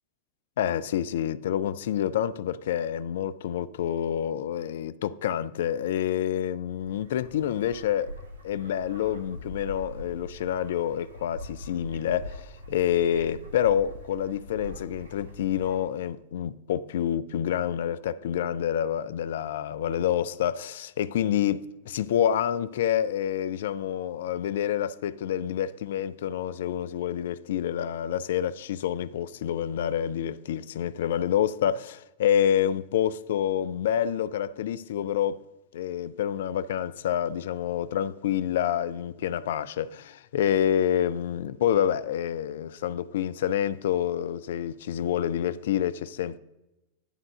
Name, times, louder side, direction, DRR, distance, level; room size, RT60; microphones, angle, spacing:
voice 1, 0.6-8.1 8.4-35.4 35.7-46.4, left 10 dB, 60° left, 0.3 m, -28 dB
sound 1, 6.6-15.8, equal, 70° right, 1.8 m, -43 dB
10.0 x 3.6 x 6.4 m
figure-of-eight pair, 90°, 0 cm